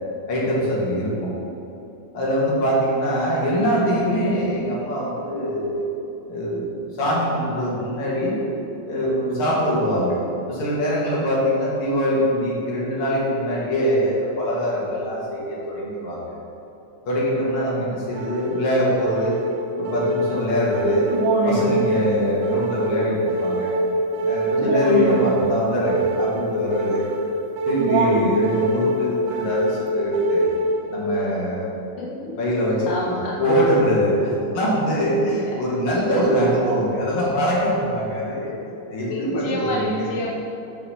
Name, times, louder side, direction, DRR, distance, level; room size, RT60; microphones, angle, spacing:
voice 1, 0.3-1.3 2.1-5.9 6.3-6.7 7.0-8.4 8.9-10.2 10.5-16.2 17.1-19.4 19.8-21.1 21.5-23.7 24.2-27.1 27.7-30.4 30.9-31.7 32.4-32.9 33.4-38.5 38.9-40.1, equal, 50° left, -6 dB, 2.1 m, -23 dB
sound 1, 18.1-31.1, right 1 dB, 85° right, 1.2 m, -24 dB
voice 2, 32.0-32.3 32.9-33.3 35.2-35.4 36.6-36.7 39.0-40.4, left 1 dB, 70° left, -5 dB, 1.3 m, -29 dB
5.7 x 5.2 x 5.5 m, 2.9 s
omnidirectional pair, 3.6 m